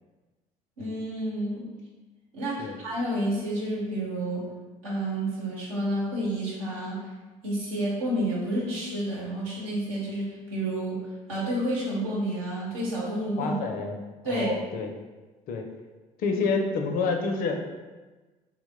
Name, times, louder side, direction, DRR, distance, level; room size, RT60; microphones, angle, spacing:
voice 1, 0.8-1.6 2.3-4.4 4.8-7.0 7.4-11.0 11.3-13.5 14.2-14.5, right 1 dB, 80° right, -6 dB, 0.9 m, -30 dB
voice 2, 13.4-14.0 14.2-14.9 15.5-15.6 16.2-17.8, left 4 dB, 55° left, 4 dB, 0.4 m, -28 dB
2.9 x 2.1 x 3.3 m, 1.2 s
hypercardioid pair, 55°, 18 cm